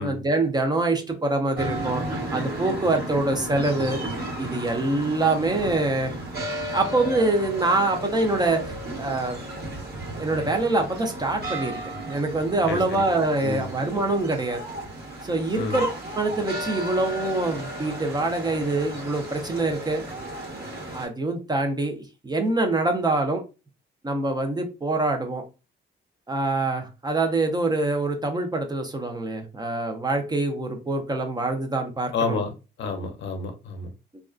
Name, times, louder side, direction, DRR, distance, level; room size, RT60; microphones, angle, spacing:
voice 1, 0.0-2.0 2.3-4.0 4.4-6.2 6.7-9.4 10.2-14.6 15.2-15.9 16.2-20.0 20.9-23.4 24.0-25.4 26.3-32.4, right 2 dB, 20° right, 0.5 m, -25 dB
sound 1, 1.5-21.1, right 1 dB, 50° right, 1.2 m, -34 dB
voice 2, 12.7-13.0 13.4-13.7 15.5-15.8 32.1-32.5 32.8-33.9, left 4 dB, 65° left, 0.6 m, -29 dB
2.3 x 2.2 x 2.4 m
cardioid pair, 90°, 20 cm